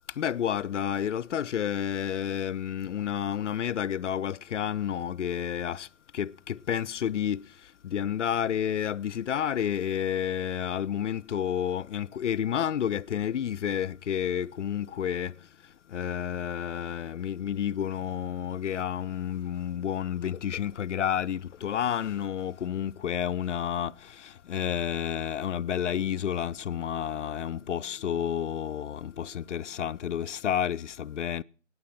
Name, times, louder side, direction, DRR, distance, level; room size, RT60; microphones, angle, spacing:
voice 1, 0.2-5.9 6.1-7.5 7.8-15.4 15.9-31.4, left 9 dB, 70° left, 0.5 m, -30 dB
15.5 x 9.5 x 5.8 m
figure-of-eight pair, 150°, 38 cm